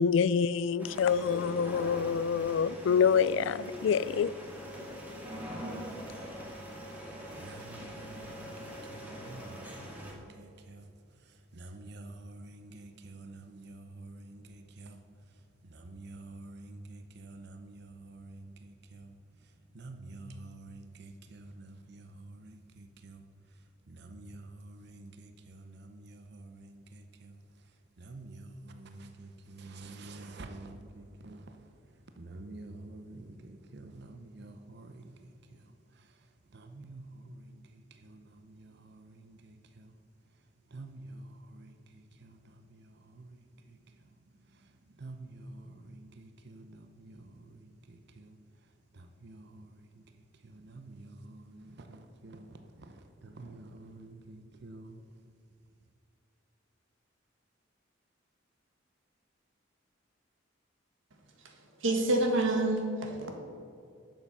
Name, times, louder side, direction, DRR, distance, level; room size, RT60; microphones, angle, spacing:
voice 1, 0.0-4.3, left 6 dB, 70° left, 0.3 m, -26 dB
sound 1, 0.8-10.1, equal, 10° right, 1.9 m, -43 dB
voice 2, 7.3-10.9 11.5-15.0 15.6-19.1 19.7-23.2 23.9-27.4 28.0-31.6 32.2-35.3 36.5-37.6 37.9-39.9 40.7-43.4 43.7-43.8 45.0-48.4 48.9-50.0 50.4-55.0, right 2 dB, 60° right, 0.7 m, -49 dB
voice 3, 61.8-63.4, right 2 dB, 80° right, 1.7 m, -28 dB
10.5 x 7.3 x 5.5 m
head